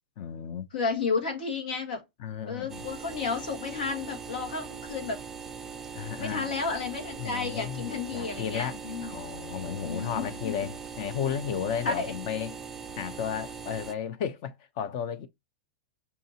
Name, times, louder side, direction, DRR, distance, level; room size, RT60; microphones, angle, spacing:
voice 1, 0.2-0.7 2.2-2.8 5.9-6.5 7.2-12.6 13.0-15.3, left 8 dB, 50° left, 0.7 m, -34 dB
voice 2, 0.7-2.0 2.5-5.2 6.2-9.1 9.8-10.5 11.8-12.1, left 4 dB, 85° left, 1.7 m, -32 dB
sound 1, 2.7-13.9, right 6 dB, 10° right, 0.4 m, -41 dB
5.7 x 2.6 x 2.8 m
hypercardioid pair, 140°, 5 cm